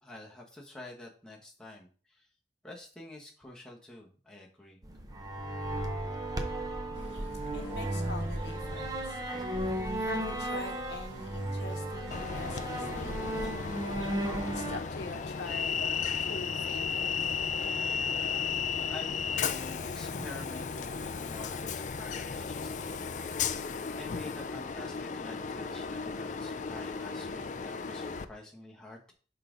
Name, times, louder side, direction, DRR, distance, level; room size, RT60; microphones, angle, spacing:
voice 1, 0.0-2.3 2.6-4.8 18.9-23.3 23.9-29.1, left 2 dB, 5° left, -3 dB, 1.1 m, -48 dB
sound 1, 4.8-14.8, right 1 dB, 20° right, 0.7 m, -35 dB
voice 2, 6.9-9.2 9.9-14.2 14.5-17.0, left 3 dB, 60° left, 5 dB, 1.0 m, -44 dB
sound 2, 6.9-14.8, right 1 dB, 75° right, 1.8 m, -54 dB
Train, 12.1-28.3, left 6 dB, 40° left, 0.4 m, -34 dB
5.6 x 3.9 x 5.0 m, 0.40 s
head